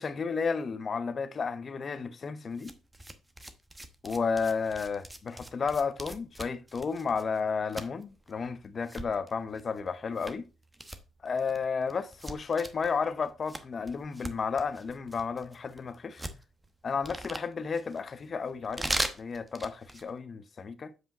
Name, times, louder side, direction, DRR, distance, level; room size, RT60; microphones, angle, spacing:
voice 1, 0.0-2.7 4.0-10.5 11.2-16.3 16.8-18.9 19.2-20.9, left 5 dB, 40° left, 0.8 m, -32 dB
sound 1, 2.5-20.1, right 1 dB, 15° right, 1.0 m, -41 dB
8.0 x 5.1 x 4.0 m
cardioid pair, 90°, 0 cm